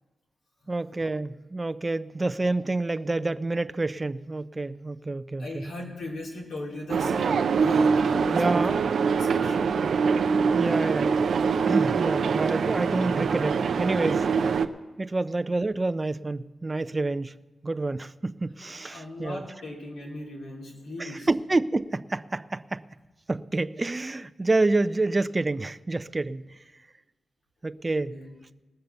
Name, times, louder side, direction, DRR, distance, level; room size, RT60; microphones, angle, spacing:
voice 1, 0.7-5.6 8.3-9.0 10.5-11.3 11.7-14.3 15.0-17.3 17.6-19.4 21.0-22.8 23.3-26.6 27.6-28.2, right 2 dB, 30° right, 0.5 m, -28 dB
voice 2, 5.4-9.8 18.8-21.3 28.1-28.3, left 1 dB, 90° left, 3.1 m, -38 dB
sound 1, 6.9-14.7, right 5 dB, 80° right, 0.5 m, -24 dB
18.5 x 6.7 x 6.9 m
cardioid pair, 65°, 0 cm